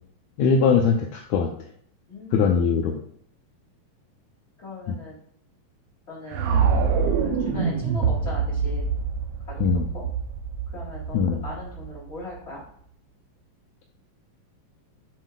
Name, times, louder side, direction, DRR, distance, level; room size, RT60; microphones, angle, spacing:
voice 1, 0.4-1.5 2.3-2.9 4.9-5.0 9.6-9.9 11.1-11.4, left 6 dB, 75° left, 1 dB, 1.7 m, -21 dB
voice 2, 2.1-2.6 4.6-5.2 6.1-6.4 7.4-8.9 9.5-9.6 9.9-10.0 10.7-12.6, left 2 dB, 20° left, -5 dB, 3.4 m, -39 dB
sound 1, 6.3-12.4, right 6 dB, 90° right, 1.3 m, -25 dB
8.2 x 7.5 x 2.4 m, 0.64 s
omnidirectional pair, 4.0 m